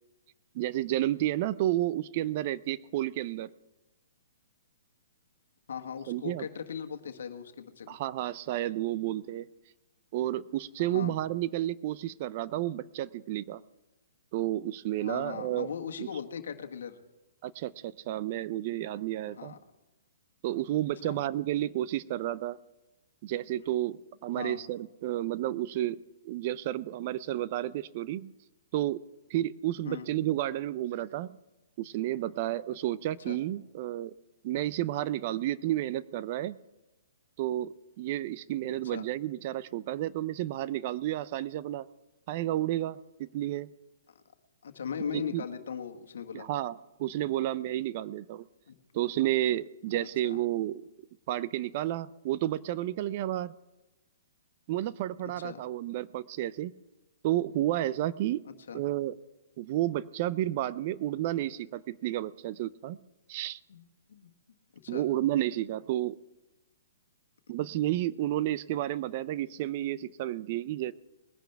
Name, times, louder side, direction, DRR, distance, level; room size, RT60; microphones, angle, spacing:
voice 1, 0.5-3.5 6.1-6.5 7.9-9.4 10.1-13.6 14.3-15.7 16.0-16.1 17.4-19.5 20.4-22.6 23.2-28.3 28.7-29.0 29.3-31.4 31.8-34.1 34.4-36.6 37.4-41.9 42.3-43.7 45.1-45.4 46.3-48.4 48.9-50.8 51.3-53.5 54.7-56.7 57.2-58.4 58.7-59.1 59.6-63.0 63.3-63.6 64.9-66.2 67.5-70.9, right 14 dB, 40° right, 18 dB, 0.5 m, -31 dB
voice 2, 5.7-8.0 10.8-11.2 14.9-17.0 19.3-19.6 21.0-21.2 24.3-24.6 29.8-30.1 33.2-33.4 38.8-39.1 44.6-46.5 48.7-48.8 50.0-50.4 55.4-55.6 58.4-58.8 63.7-64.3 64.8-65.0, left 7 dB, 75° left, 6 dB, 1.5 m, -39 dB
20.5 x 10.5 x 3.5 m, 1.1 s
hypercardioid pair, 145°, 0 cm